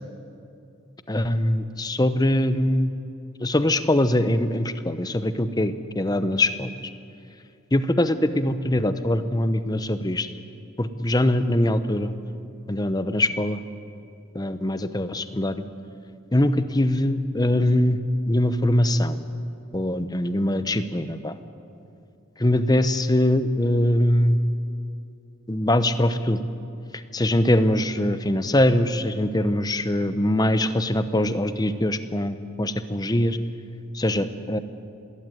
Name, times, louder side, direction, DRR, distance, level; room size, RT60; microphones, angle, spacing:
voice 1, 1.1-2.9 3.4-6.7 7.7-10.3 10.8-12.1 12.7-13.6 14.3-15.6 16.3-18.0 18.3-19.2 19.7-21.4 22.4-24.4 25.5-26.4 26.9-33.4 33.9-34.6, left 1 dB, 20° left, 11 dB, 0.8 m, -22 dB
20.0 x 17.0 x 9.3 m, 2.7 s
head